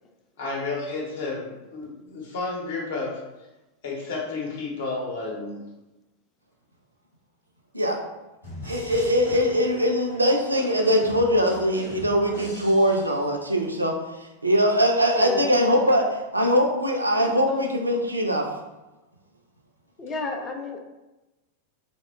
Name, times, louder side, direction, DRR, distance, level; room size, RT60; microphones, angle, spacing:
voice 1, 0.4-3.2 3.8-5.6, left 3 dB, 55° left, -3 dB, 0.7 m, -31 dB
sound 1, 8.4-13.5, equal, 85° left, 0.9 m, -41 dB
voice 2, 8.6-13.9 14.4-18.5, equal, 85° right, 2 dB, 0.3 m, -22 dB
voice 3, 15.1-15.5 17.5-17.7 20.0-20.8, left 4 dB, 25° left, 2 dB, 0.4 m, -31 dB
2.6 x 2.1 x 2.2 m, 1.0 s
figure-of-eight pair, 90°, 0 cm